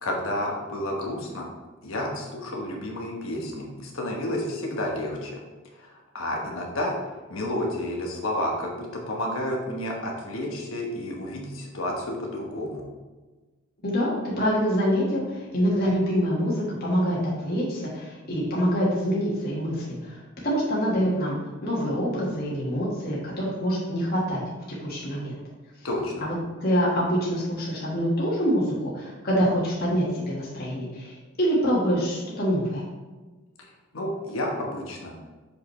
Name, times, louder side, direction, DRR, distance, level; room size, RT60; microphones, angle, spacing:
voice 1, 0.0-1.5 1.8-5.4 5.8-6.9 7.3-12.8 25.8-26.3 33.9-35.1, left 1 dB, 75° left, -1 dB, 1.1 m, -30 dB
voice 2, 13.8-24.4 24.7-25.3 26.2-26.3 26.6-28.6 28.9-31.1 31.4-32.8, equal, 50° left, -6 dB, 1.6 m, -25 dB
6.5 x 5.3 x 3.2 m, 1.3 s
head